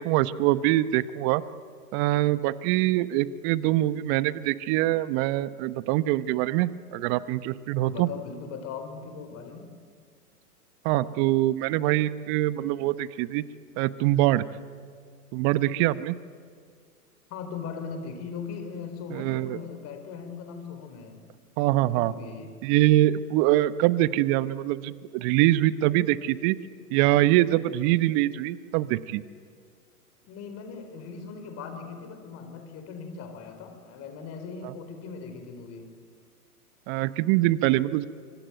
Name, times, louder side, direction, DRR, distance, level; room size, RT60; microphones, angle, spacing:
voice 1, 0.0-1.4 1.9-8.1 10.8-13.4 13.8-14.4 15.3-16.2 19.1-19.6 21.6-22.1 22.6-26.6 26.9-29.2 34.6-34.7 36.9-38.1, right 15 dB, 35° right, 16 dB, 1.0 m, -24 dB
voice 2, 7.8-9.7 17.3-21.2 21.8-22.6 30.3-35.9, left 5 dB, 30° left, 7 dB, 4.9 m, -39 dB
25.5 x 25.5 x 9.2 m, 2.1 s
hypercardioid pair, 115°, 46 cm